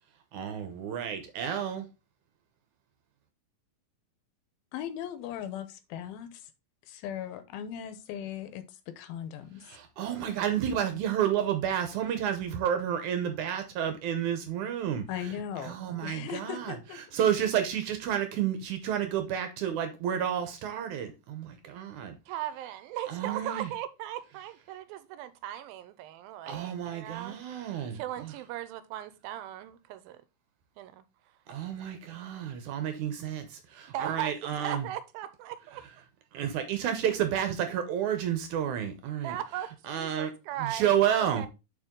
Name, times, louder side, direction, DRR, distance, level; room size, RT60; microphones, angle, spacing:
voice 1, 0.3-1.9 9.7-15.0 15.6-16.7 17.1-22.1 23.1-23.7 26.5-28.3 31.5-34.9 36.3-39.4 39.9-40.3 40.7-41.4, right 9 dB, 70° right, 2.0 m, -30 dB
voice 2, 4.7-6.5 6.9-9.8 15.1-17.0, left 10 dB, 90° left, 2.7 m, -38 dB
voice 3, 22.3-27.4 27.9-30.2 30.8-31.0 33.9-35.8 39.2-39.7 39.9-41.5, right 12 dB, 85° right, 2.5 m, -38 dB
8.0 x 4.5 x 3.7 m
omnidirectional pair, 4.1 m